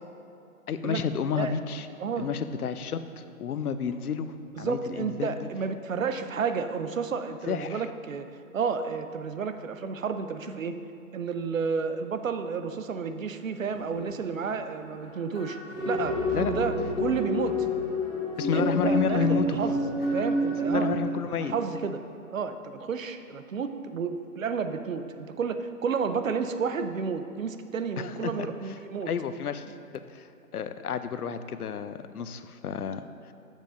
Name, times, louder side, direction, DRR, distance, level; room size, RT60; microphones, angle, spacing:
voice 1, 0.7-1.9 2.2-5.5 7.5-7.8 16.3-16.5 18.4-19.6 20.6-21.5 28.0-28.8 29.1-29.7 29.9-30.3 30.5-33.0, left 7 dB, 75° left, 11 dB, 0.6 m, -31 dB
voice 2, 4.6-8.3 8.5-10.8 11.1-15.6 15.9-17.7 18.5-19.8 20.1-22.0 22.3-29.1, right 5 dB, 60° right, 9 dB, 0.6 m, -31 dB
sound 1, 13.7-14.0 14.7-14.8 15.0-15.1 15.3-20.7, left 1 dB, 5° right, 1.3 m, -28 dB
7.4 x 5.2 x 5.0 m, 2.8 s
hypercardioid pair, 165°, 45 cm